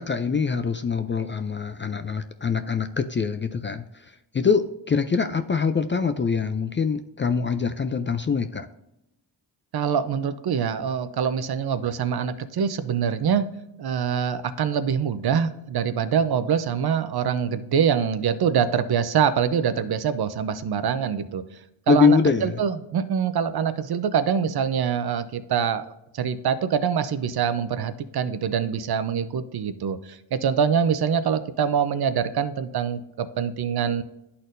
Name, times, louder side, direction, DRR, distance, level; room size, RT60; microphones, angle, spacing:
voice 1, 0.0-3.8 4.3-8.7 21.9-22.6, left 5 dB, 25° left, 8 dB, 0.3 m, -24 dB
voice 2, 9.7-13.5 13.8-21.4 21.9-34.0, right 7 dB, 55° right, 12 dB, 0.6 m, -24 dB
11.0 x 4.3 x 2.6 m, 0.87 s
cardioid pair, 90°, 46 cm